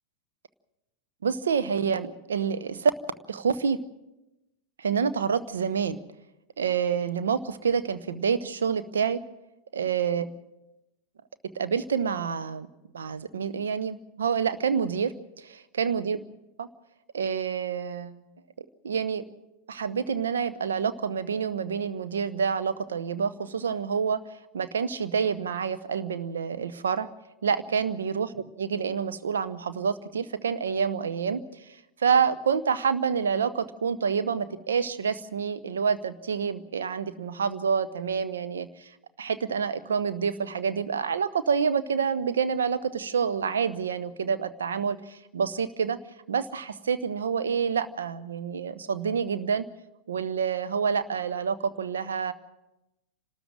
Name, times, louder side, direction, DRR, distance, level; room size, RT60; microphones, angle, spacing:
voice 1, 1.2-2.9 3.3-3.8 4.8-6.0 6.6-9.2 9.7-10.2 11.5-12.7 12.9-16.2 16.6-16.7 17.1-18.2 18.8-19.2 19.7-24.2 24.5-27.1 27.4-31.6 32.0-38.9 39.2-46.0 46.3-49.6 50.1-52.3, right 6 dB, 65° right, 10 dB, 1.0 m, -27 dB
28.0 x 13.0 x 7.6 m, 0.96 s
figure-of-eight pair, 90°, 0 cm